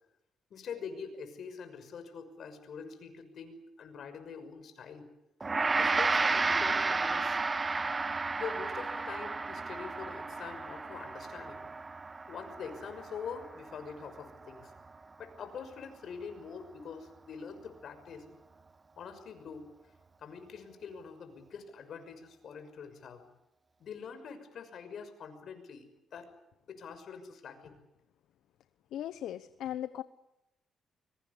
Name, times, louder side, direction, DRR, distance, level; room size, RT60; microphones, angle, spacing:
voice 1, 0.5-5.1 5.7-7.4 8.4-11.7 12.3-14.7 15.2-18.4 19.0-19.7 20.2-23.2 23.8-26.3 26.7-27.8, left 6 dB, 60° left, 9 dB, 6.1 m, -44 dB
Gong, 5.4-14.8, right 3 dB, 25° right, 1.1 m, -32 dB
voice 2, 28.9-30.0, left 11 dB, 80° left, 13 dB, 0.9 m, -38 dB
24.5 x 23.0 x 8.4 m, 0.87 s
cardioid pair, 90°, 0 cm